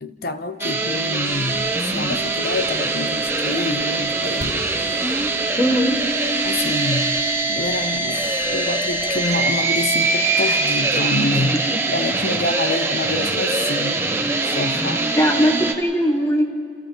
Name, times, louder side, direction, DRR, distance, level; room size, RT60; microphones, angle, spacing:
voice 1, 0.0-5.2 6.4-7.1 7.5-11.6 11.9-14.0 14.4-15.1, left 2 dB, 50° left, 9 dB, 1.0 m, -27 dB
sound 1, 0.6-15.7, right 3 dB, 15° right, 1.1 m, -22 dB
sound 2, 1.2-9.4, right 1 dB, 60° right, 5.2 m, -43 dB
voice 2, 5.6-6.0 11.7-11.8 15.2-16.5, equal, 15° left, 3 dB, 1.5 m, -19 dB
28.0 x 27.5 x 4.0 m, 2.3 s
head